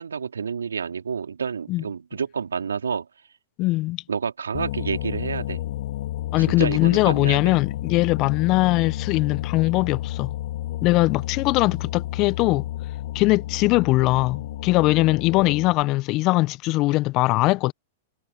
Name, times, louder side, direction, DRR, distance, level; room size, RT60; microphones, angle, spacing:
voice 1, 0.0-3.1 4.1-5.6 6.4-7.6, right 6 dB, 80° right, 3.6 m, -29 dB
voice 2, 3.6-4.0 6.3-10.3 10.8-12.7 13.1-17.7, left 20 dB, 40° left, 1.1 m, -21 dB
sound 1, 4.5-15.8, left 14 dB, 60° left, 3.2 m, -31 dB
hypercardioid pair, 105°, 0 cm